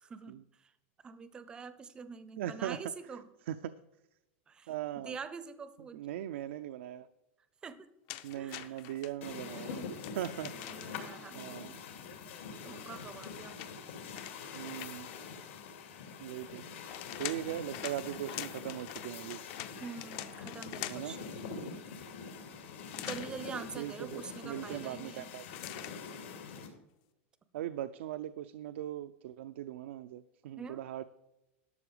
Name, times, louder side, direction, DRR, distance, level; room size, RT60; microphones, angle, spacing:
voice 1, 0.0-0.7 1.0-3.3 4.5-6.1 7.6-7.9 8.4-8.8 9.5-9.9 10.7-11.8 12.6-13.6 19.8-21.5 23.0-25.3 30.6-30.8, right 5 dB, 15° right, 13 dB, 0.6 m, -45 dB
voice 2, 2.4-2.8 3.5-3.7 4.7-5.2 5.9-7.1 8.2-9.7 10.2-10.5 11.3-11.8 14.5-15.1 16.2-16.7 17.2-19.4 20.9-21.1 23.8-25.4 27.5-31.0, right 12 dB, 70° right, 10 dB, 0.5 m, -39 dB
sound 1, 8.1-9.1 10.0-11.1 12.9-15.2 16.6-21.2 22.9-23.3 25.5-26.0, left 14 dB, 40° left, 0.6 m, -44 dB
sound 2, 9.2-26.7, left 5 dB, 80° left, 2.7 m, -45 dB
12.0 x 6.8 x 5.0 m, 0.95 s
supercardioid pair, 165°, 7 cm